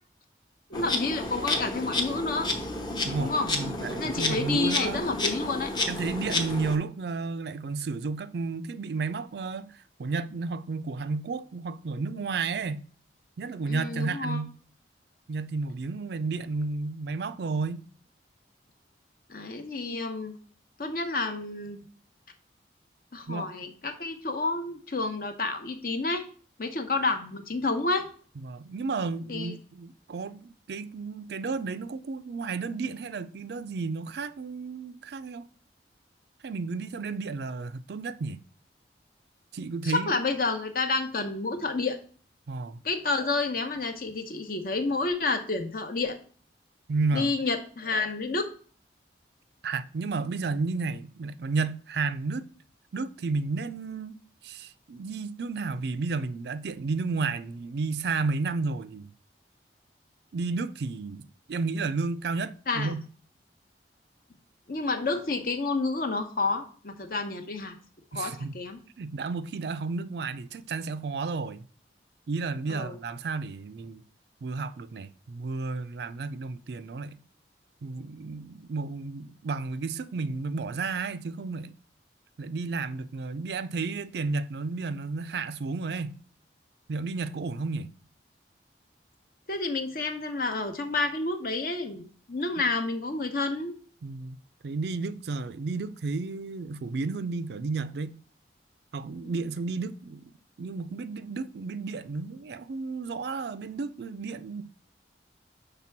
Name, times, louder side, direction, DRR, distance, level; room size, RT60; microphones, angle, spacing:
voice 1, 0.7-2.5 3.2-3.5 4.0-5.7 13.7-14.4 19.3-20.3 20.8-21.8 23.1-26.3 26.6-28.1 29.3-29.5 39.8-42.0 42.8-46.2 47.1-48.5 62.7-62.9 64.7-67.7 68.1-68.8 72.7-73.0 89.5-93.7 99.2-99.3, left 3 dB, 50° left, 0.9 m, -29 dB
Insect, 0.7-6.8, left 2 dB, 25° left, 0.8 m, -31 dB
voice 2, 3.0-5.0 5.9-12.9 13.4-14.5 15.3-17.8 23.3-23.5 28.4-35.5 36.4-38.4 39.5-40.1 42.5-42.8 46.9-47.3 49.6-52.4 52.9-54.2 54.4-59.1 60.3-63.1 68.1-68.6 69.0-71.6 72.3-74.0 74.4-77.2 77.8-81.7 82.4-86.2 86.9-87.9 94.0-94.4 94.6-98.2 98.9-100.3 100.6-104.6, right 4 dB, 65° right, 0.4 m, -32 dB
5.9 x 3.3 x 5.8 m
head